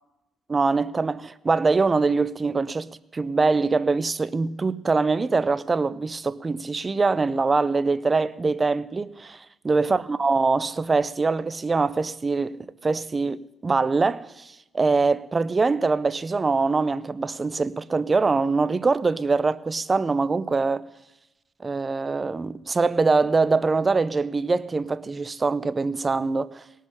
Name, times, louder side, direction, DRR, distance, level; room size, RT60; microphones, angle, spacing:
voice 1, 0.5-20.9 21.6-26.6, right 4 dB, 30° right, 0.6 m, -23 dB
18.0 x 6.5 x 9.8 m
cardioid pair, 90°, 0 cm